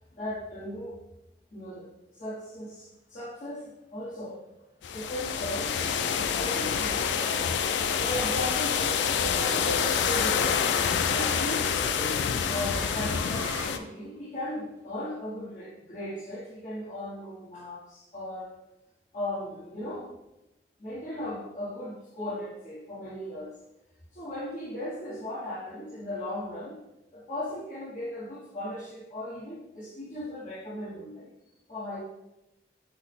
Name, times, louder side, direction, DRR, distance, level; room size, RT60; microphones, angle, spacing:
voice 1, 0.1-1.0 1.5-4.4 4.8-5.7 6.3-7.3 8.0-10.5 11.1-18.5 19.1-20.2 20.8-23.6 24.1-26.8 27.1-31.3 31.7-32.0, left 1 dB, 45° left, -8 dB, 1.1 m, -37 dB
sound 1, 4.8-13.8, left 7 dB, 90° left, 0.4 m, -27 dB
sound 2, 11.4-14.6, equal, 15° right, 0.7 m, -43 dB
5.9 x 2.0 x 4.1 m, 0.92 s
head